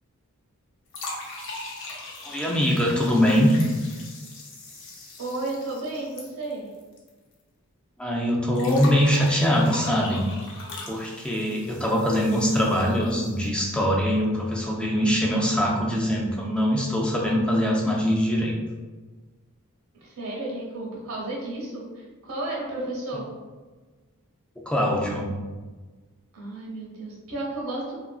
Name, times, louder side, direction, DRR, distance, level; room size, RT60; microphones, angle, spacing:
sound 1, 0.9-7.1 7.3-7.4 8.6-13.6, left 2 dB, 60° left, 0.6 m, -40 dB
voice 1, 2.2-3.6 8.0-10.2 10.9-18.6 24.6-25.3, equal, 5° left, -3 dB, 0.3 m, -23 dB
voice 2, 5.2-6.7 20.0-23.2 26.3-28.0, right 2 dB, 70° right, -3 dB, 0.8 m, -33 dB
2.8 x 2.5 x 2.3 m, 1.3 s
head